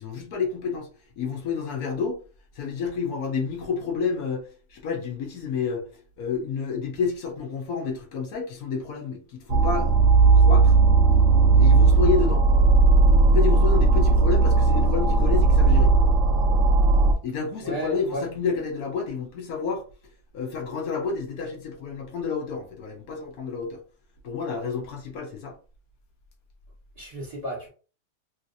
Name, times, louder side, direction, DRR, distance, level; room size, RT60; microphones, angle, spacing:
voice 1, 0.0-2.2 2.5-9.9 10.3-10.8 11.6-12.4 13.3-15.9 17.2-19.8 20.3-23.8 24.2-25.6, left 5 dB, 65° left, 1.0 m, -30 dB
sound 1, 9.5-17.1, right 3 dB, 75° right, 0.7 m, -17 dB
voice 2, 17.6-18.2 27.0-27.7, right 1 dB, 20° right, 1.8 m, -32 dB
3.1 x 2.7 x 2.6 m
omnidirectional pair, 1.9 m